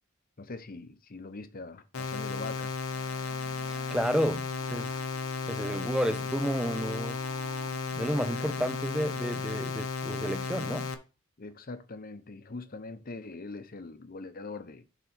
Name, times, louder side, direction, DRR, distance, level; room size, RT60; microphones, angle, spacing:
voice 1, 0.4-2.7 11.4-14.8, left 3 dB, 45° left, 0.8 m, -42 dB
sound 1, 1.9-10.9, left 4 dB, 80° left, 0.9 m, -34 dB
Wind instrument woodwind instrument, 2.9-10.0, right 2 dB, 60° right, 2.0 m, -52 dB
voice 2, 3.6-5.0 5.5-7.2 7.9-10.9, equal, 5° right, 0.3 m, -31 dB
7.0 x 4.0 x 5.8 m
head